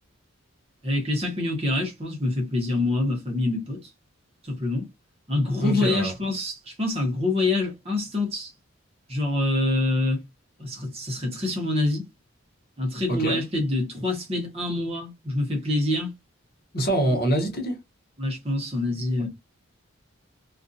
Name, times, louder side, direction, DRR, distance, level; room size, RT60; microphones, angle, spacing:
voice 1, 0.8-3.9 4.4-4.9 5.3-8.5 9.1-10.2 10.6-12.1 12.8-16.1 18.2-19.3, left 2 dB, 30° right, 0.9 m, -26 dB
voice 2, 5.6-6.1 13.1-13.4 16.7-17.8, right 1 dB, 45° left, 1.0 m, -24 dB
2.4 x 2.4 x 2.6 m
head